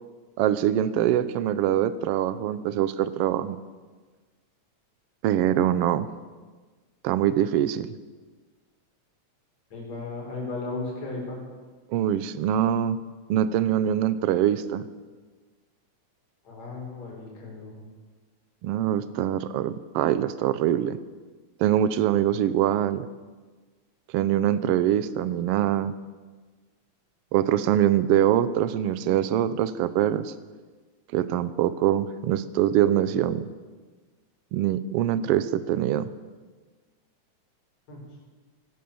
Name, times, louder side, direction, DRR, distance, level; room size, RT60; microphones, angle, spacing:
voice 1, 0.4-3.6 5.2-6.1 7.0-8.0 11.9-13.0 13.3-14.8 18.6-21.0 21.6-23.1 24.1-25.9 27.3-30.3 31.1-33.5 34.5-36.1, right 11 dB, 75° right, 14 dB, 1.4 m, -23 dB
voice 2, 9.7-11.4 16.4-17.9 37.9-38.1, left 3 dB, 65° left, -2 dB, 5.5 m, -35 dB
16.5 x 12.5 x 7.0 m, 1.4 s
omnidirectional pair, 3.4 m